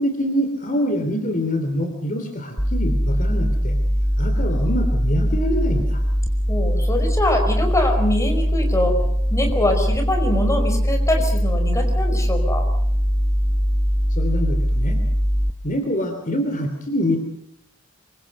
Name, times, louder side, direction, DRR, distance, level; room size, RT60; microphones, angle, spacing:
voice 1, 0.0-3.8 4.2-6.0 14.1-15.0 15.6-17.2, equal, 40° left, 4 dB, 3.1 m, -25 dB
sound 1, 2.6-15.5, equal, ahead, 1.3 m, -21 dB
voice 2, 6.5-8.9 9.3-12.6, left 1 dB, 15° left, 4 dB, 4.9 m, -23 dB
26.0 x 24.0 x 5.4 m, 0.71 s
head